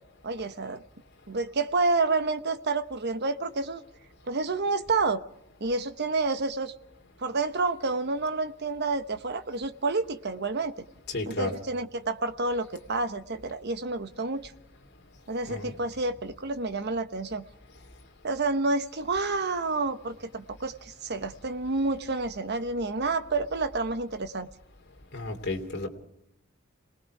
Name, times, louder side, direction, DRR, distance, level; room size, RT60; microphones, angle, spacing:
voice 1, 0.2-0.8 1.3-3.8 4.3-5.2 5.6-6.7 7.2-10.7 11.3-14.5 15.3-17.4 18.2-24.5, right 3 dB, 55° right, 10 dB, 1.1 m, -29 dB
voice 2, 11.1-11.5 15.5-15.7 25.1-25.9, left 2 dB, 55° left, 2 dB, 2.9 m, -32 dB
27.5 x 19.5 x 4.8 m, 0.78 s
head